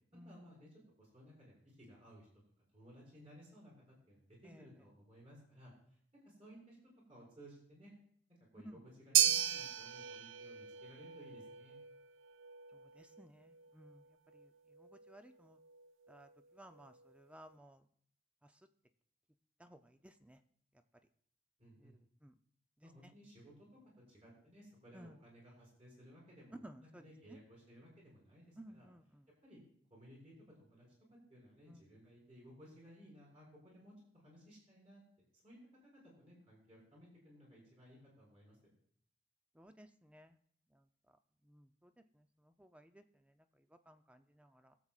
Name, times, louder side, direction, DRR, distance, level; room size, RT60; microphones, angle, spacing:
voice 1, 0.2-0.7 1.0-2.3 2.7-4.2 4.6-5.7 6.2-6.8 7.1-7.9 8.5-11.8 21.6-21.9 22.8-23.7 24.1-28.9 29.4-29.6 29.9-30.3 30.6-30.9 31.3-35.0 35.4-35.6 35.8-35.9 36.2-38.6, equal, 35° right, -4 dB, 4.9 m, -59 dB
sound 1, 9.1-17.5, right 11 dB, 85° right, 0.5 m, -38 dB
voice 2, 13.0-14.0 14.8-15.6 16.1-16.3 16.6-17.8 19.6-20.4 22.2-22.3 24.9-25.1 26.6-27.0 27.3-27.4 28.6-29.0 31.7-31.8 39.6-40.3 41.5-41.9 42.6-43.0 43.9-44.8, right 1 dB, 5° right, 8 dB, 0.5 m, -57 dB
21.5 x 7.5 x 2.4 m, 0.63 s
head